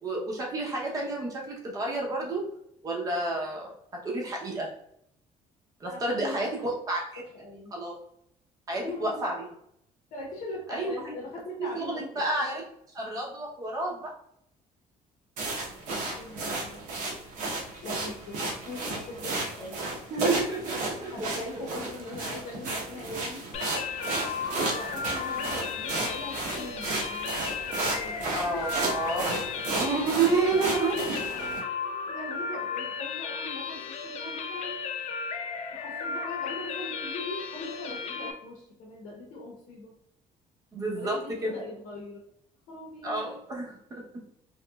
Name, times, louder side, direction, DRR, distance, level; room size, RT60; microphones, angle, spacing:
voice 1, 0.0-2.4 2.8-3.7 4.0-4.7 5.8-7.2 7.7-7.9 8.7-9.5 10.7-10.9 11.7-12.6 12.9-14.1 20.1-21.1 28.3-29.3 29.8-31.3 40.7-41.6 43.0-44.0, right 3 dB, 25° right, -2 dB, 0.7 m, -30 dB
voice 2, 5.8-6.5 7.3-7.7 8.8-9.1 10.1-12.3 16.1-16.8 17.8-19.8 21.1-23.5 24.6-27.3 27.8-28.7 29.1-29.6 32.0-34.8 35.7-39.9 40.9-42.2 42.7-43.3, left 2 dB, 75° left, 0 dB, 0.8 m, -41 dB
sound 1, 15.4-31.6, right 2 dB, 65° right, 0.9 m, -33 dB
sound 2, 23.5-38.3, left 5 dB, 50° left, 0.4 m, -35 dB
3.1 x 3.1 x 2.3 m, 0.73 s
cardioid pair, 180°, 14 cm